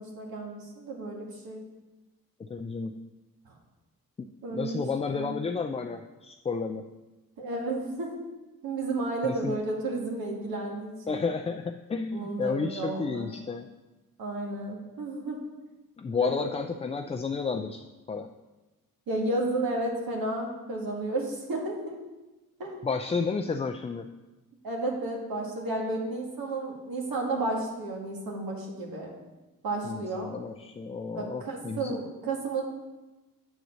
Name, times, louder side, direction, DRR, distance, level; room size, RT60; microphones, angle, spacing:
voice 1, 0.0-1.6 4.4-4.8 5.1-5.3 7.4-8.1 8.6-11.2 12.1-13.3 14.2-15.4 16.2-16.3 19.1-22.0 22.6-22.9 24.6-29.1 29.6-30.3 31.2-32.6, right 2 dB, 75° right, -1 dB, 1.8 m, -32 dB
voice 2, 2.4-3.0 4.2-6.9 9.2-9.6 11.1-13.7 16.0-17.8 18.1-18.3 22.8-24.1 29.8-32.0, left 4 dB, 20° left, 5 dB, 0.3 m, -32 dB
8.1 x 3.9 x 6.3 m, 1.1 s
cardioid pair, 80°, 36 cm